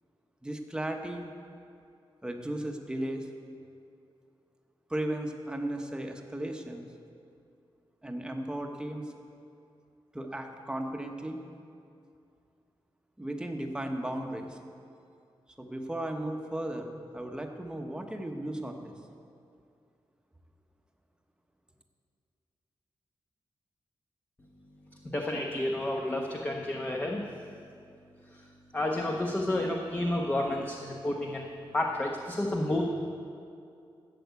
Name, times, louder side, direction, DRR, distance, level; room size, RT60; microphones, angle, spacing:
voice 1, 0.4-1.3 2.2-3.3 4.9-6.9 8.0-9.1 10.1-11.4 13.2-14.6 15.6-18.9, right 1 dB, 10° right, 3 dB, 1.0 m, -35 dB
voice 2, 25.1-27.2 28.7-32.8, left 1 dB, 20° left, 1 dB, 0.9 m, -30 dB
12.5 x 7.9 x 8.1 m, 2.5 s
wide cardioid pair, 155°, 9 cm